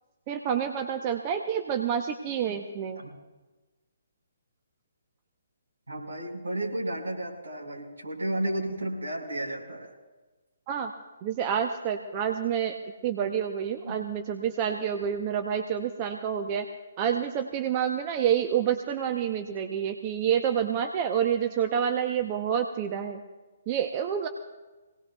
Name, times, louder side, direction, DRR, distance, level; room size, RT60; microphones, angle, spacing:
voice 1, 0.3-3.0 10.7-10.9 11.2-12.8 13.0-16.7 17.0-23.2 23.7-24.3, right 8 dB, 30° right, 5 dB, 0.8 m, -28 dB
voice 2, 5.9-9.9 13.8-14.0, right 1 dB, 75° right, -1 dB, 4.9 m, -32 dB
24.5 x 18.0 x 2.3 m, 1.2 s
figure-of-eight pair, 130°, 0 cm